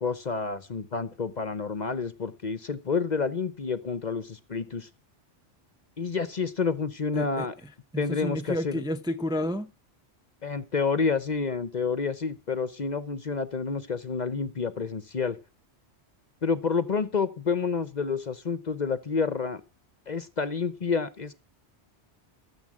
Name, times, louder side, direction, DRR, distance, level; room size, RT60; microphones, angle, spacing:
voice 1, 0.0-4.9 6.0-7.5 8.0-8.8 10.4-15.4 16.4-19.6 20.1-21.3, left 5 dB, 45° left, 0.8 m, -29 dB
voice 2, 7.1-9.7, left 1 dB, 5° right, 0.6 m, -31 dB
14.5 x 7.1 x 7.5 m
omnidirectional pair, 1.2 m